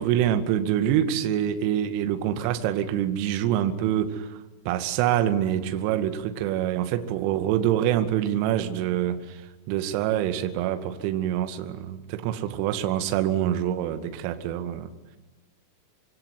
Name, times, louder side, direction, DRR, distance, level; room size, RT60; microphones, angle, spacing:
voice 1, 0.0-14.9, right 11 dB, 45° right, 2.1 m, -26 dB
26.0 x 24.0 x 9.5 m
figure-of-eight pair, 90°, 0 cm